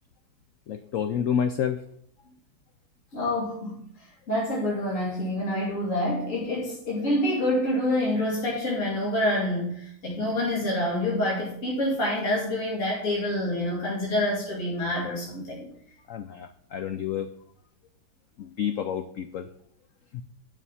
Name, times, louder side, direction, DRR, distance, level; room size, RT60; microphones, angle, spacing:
voice 1, 0.7-1.8 16.1-17.3 18.4-19.5 20.1-20.2, left 8 dB, 85° left, 8 dB, 0.7 m, -29 dB
voice 2, 3.1-3.8 4.3-15.7, left 1 dB, 40° left, -6 dB, 2.9 m, -27 dB
9.7 x 5.8 x 5.5 m, 0.66 s
omnidirectional pair, 2.0 m